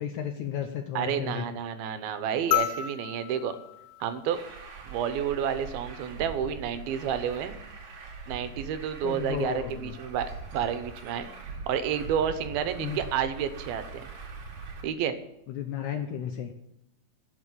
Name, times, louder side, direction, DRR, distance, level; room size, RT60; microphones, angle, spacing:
voice 1, 0.0-1.4 9.0-9.9 12.8-13.0 15.5-16.5, left 9 dB, 75° left, 6 dB, 1.8 m, -33 dB
voice 2, 1.0-3.6 4.0-4.4 4.8-7.6 8.3-14.1 14.8-15.2, right 8 dB, 85° right, 10 dB, 2.9 m, -30 dB
sound 1, 2.5-5.1 6.7-6.8, left 14 dB, 90° left, 2.5 m, -32 dB
Truck, 4.3-14.8, right 4 dB, 60° right, 3.2 m, -42 dB
11.0 x 7.0 x 8.4 m, 0.86 s
omnidirectional pair, 4.2 m